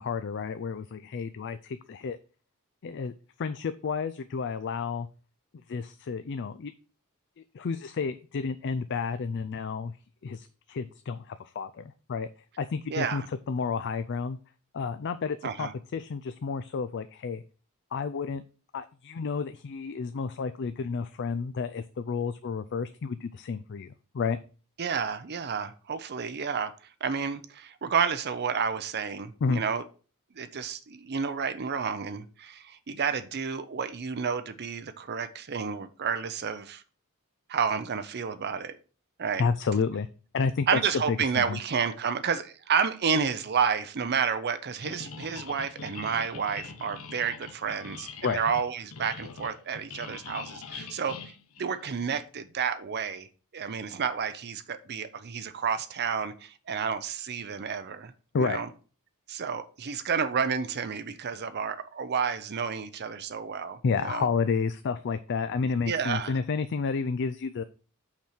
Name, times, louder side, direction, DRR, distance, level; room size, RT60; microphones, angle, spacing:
voice 1, 0.0-2.2 2.8-3.1 3.4-5.1 5.7-6.7 7.4-9.9 10.2-12.3 12.6-14.4 14.7-17.4 17.9-18.4 18.7-24.4 29.4-29.6 39.4-40.1 40.3-40.8 41.1-41.6 48.2-48.4 58.3-58.6 63.8-67.6, left 5 dB, 55° left, 11 dB, 0.4 m, -31 dB
voice 2, 12.9-13.3 15.4-15.7 24.8-26.7 27.0-29.8 30.4-36.8 37.5-38.8 39.2-39.5 40.7-51.2 51.6-53.3 53.5-58.7 59.3-64.3 65.9-66.4, right 6 dB, 50° right, 12 dB, 0.6 m, -30 dB
sound 1, 44.8-52.2, left 5 dB, 70° left, 0.9 m, -43 dB
5.8 x 4.4 x 6.3 m, 0.37 s
head